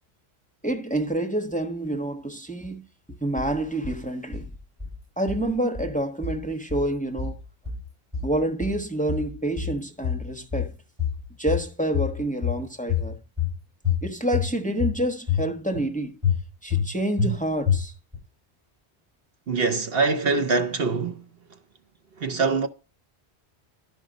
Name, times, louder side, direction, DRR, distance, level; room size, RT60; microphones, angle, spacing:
voice 1, 0.6-2.8 3.2-4.5 5.2-7.4 8.2-10.8 11.4-13.2 14.0-16.2 16.6-17.9, right 1 dB, 5° left, 1.1 m, -28 dB
sound 1, 3.4-4.0 4.3-5.0 5.3-6.0 6.2-6.9 7.2-7.9 8.1-8.8 9.1-9.8 10.0-10.7 11.0-11.7 11.9-12.6 12.9-13.5 13.8-14.5 14.8-15.4 15.7-15.9 16.2-16.9 17.2-17.3 17.7-18.2, left 7 dB, 25° right, 6.6 m, -27 dB
voice 2, 19.5-21.2 22.2-22.7, right 4 dB, 60° right, 1.1 m, -23 dB
12.0 x 5.4 x 5.0 m
omnidirectional pair, 1.1 m